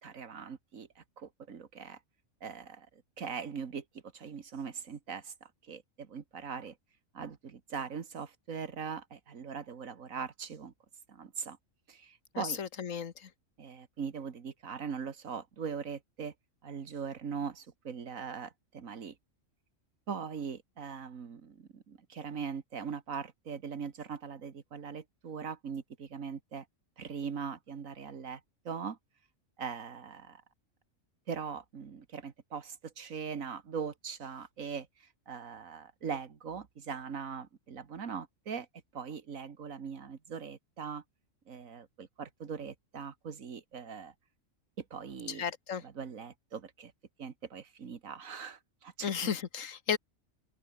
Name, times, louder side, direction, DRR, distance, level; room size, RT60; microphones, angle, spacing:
voice 1, 0.0-2.0 2.4-3.8 4.1-6.8 7.1-10.7 11.1-11.6 11.9-12.6 13.6-16.3 16.6-19.2 20.1-26.7 27.0-28.4 28.7-29.0 29.6-30.4 31.3-34.9 35.3-38.7 38.9-41.0 41.5-44.1 44.8-45.4 45.8-46.9 47.2-49.1, right 6 dB, 90° right, 2.0 m, -41 dB
voice 2, 12.3-13.3 45.3-45.8 49.0-50.0, left 7 dB, 80° left, 1.6 m, -34 dB
open air
omnidirectional pair, 1.4 m